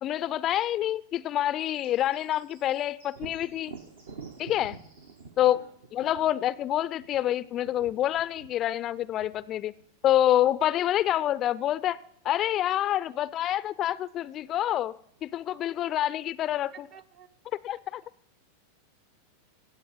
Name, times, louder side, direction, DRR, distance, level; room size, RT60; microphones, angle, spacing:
voice 1, 0.0-3.7 4.4-4.8 5.4-5.6 5.9-9.7 10.0-12.0 12.2-15.0 15.2-16.9 17.6-18.0, left 12 dB, 30° left, 19 dB, 0.4 m, -27 dB
sound 1, 1.6-5.2, right 2 dB, 85° right, 4.9 m, -61 dB
Thunder, 3.1-10.8 14.4-14.5 15.0-15.9, right 5 dB, 65° right, 0.9 m, -49 dB
voice 2, 16.7-17.3, right 8 dB, 35° right, 16 dB, 0.7 m, -52 dB
17.0 x 7.7 x 4.6 m, 0.70 s
figure-of-eight pair, 90°, 0 cm